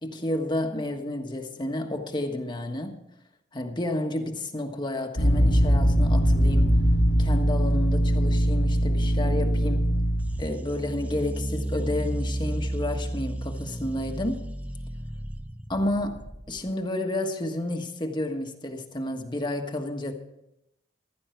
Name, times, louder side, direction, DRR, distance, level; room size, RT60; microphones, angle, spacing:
voice 1, 0.0-3.0 3.5-6.9 7.2-9.9 10.4-14.4 15.7-16.2 16.5-20.1, left 1 dB, 25° left, 1.4 m, -31 dB
sound 1, 5.2-10.5, equal, 85° left, 2.1 m, -21 dB
sound 2, 10.2-16.7, right 1 dB, 10° right, 0.6 m, -33 dB
15.5 x 13.0 x 4.5 m
head